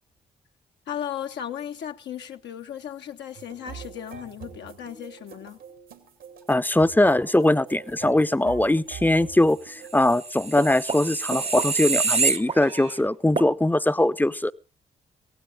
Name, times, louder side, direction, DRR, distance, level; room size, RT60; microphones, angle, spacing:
voice 1, 0.9-5.6, left 9 dB, 65° left, 0.9 m, -36 dB
Rabbit Bop, 3.3-10.2, right 7 dB, 80° right, 2.1 m, -44 dB
voice 2, 6.5-14.5, left 1 dB, 10° left, 0.7 m, -21 dB
sound 1, 10.1-13.0 13.4-13.5, right 5 dB, 35° right, 0.9 m, -26 dB
24.0 x 16.0 x 2.5 m
hypercardioid pair, 40°, 19 cm